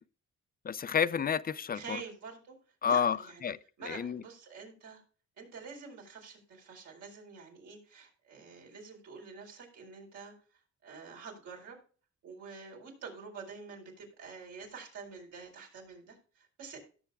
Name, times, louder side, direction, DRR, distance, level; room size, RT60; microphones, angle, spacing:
voice 1, 0.6-2.0 2.8-3.2 3.4-3.6 3.8-4.2, left 7 dB, 30° left, 0.5 m, -30 dB
voice 2, 1.7-2.6 2.9-5.0 5.4-10.3 10.8-11.8 12.2-16.8, right 5 dB, 70° right, 4.3 m, -47 dB
17.0 x 7.1 x 2.3 m
cardioid pair, 90°, 30 cm